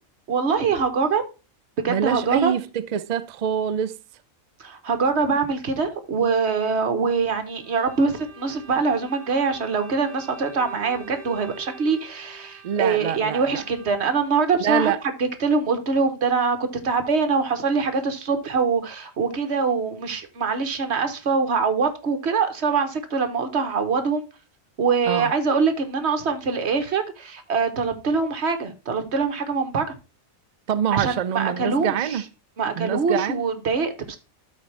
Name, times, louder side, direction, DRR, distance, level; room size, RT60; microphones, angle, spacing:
voice 1, 0.3-1.2 1.8-2.5 4.6-24.3 24.8-30.0 30.9-32.2 32.6-34.2, right 5 dB, 55° right, 1.3 m, -24 dB
voice 2, 1.9-4.0 12.6-13.4 14.6-15.0 25.1-25.3 30.7-32.3 32.8-33.4, right 9 dB, 75° right, 0.3 m, -25 dB
Bowed string instrument, 7.6-14.2, right 3 dB, 30° right, 1.2 m, -46 dB
12.5 x 4.3 x 3.3 m
omnidirectional pair, 1.4 m